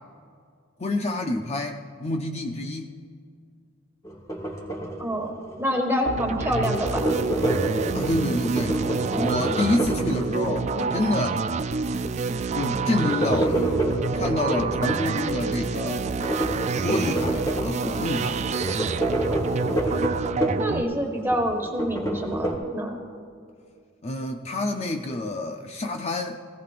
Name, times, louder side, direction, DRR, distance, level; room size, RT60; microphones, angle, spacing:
voice 1, 0.8-3.0 7.9-8.8 9.1-11.4 12.5-13.7 14.1-16.0 16.8-18.5 24.0-26.4, left 2 dB, 35° left, 4 dB, 0.6 m, -28 dB
sound 1, 4.0-5.7 6.0-10.8 12.6-15.1 16.0-18.0 18.4-20.8 21.1-22.5, right 1 dB, 20° left, 1.6 m, -28 dB
voice 2, 5.0-7.1 20.6-23.0, equal, 10° right, 2 dB, 1.6 m, -27 dB
sound 2, 6.1-20.8, right 4 dB, 35° right, 0.4 m, -28 dB
17.5 x 16.5 x 2.5 m, 2.2 s
head